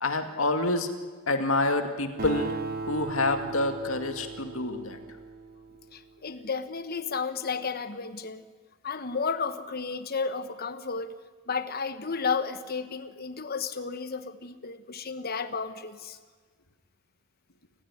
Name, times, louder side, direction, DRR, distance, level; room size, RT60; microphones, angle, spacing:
voice 1, 0.0-0.9 1.3-2.6 2.9-5.0, left 2 dB, 80° left, 7 dB, 2.3 m, -27 dB
Acoustic guitar, 2.2-6.0, right 3 dB, 50° right, 3.4 m, -37 dB
voice 2, 5.9-8.4 8.8-11.1 11.5-16.2, left 5 dB, 50° left, 11 dB, 1.1 m, -32 dB
29.0 x 15.5 x 10.0 m, 1.5 s
head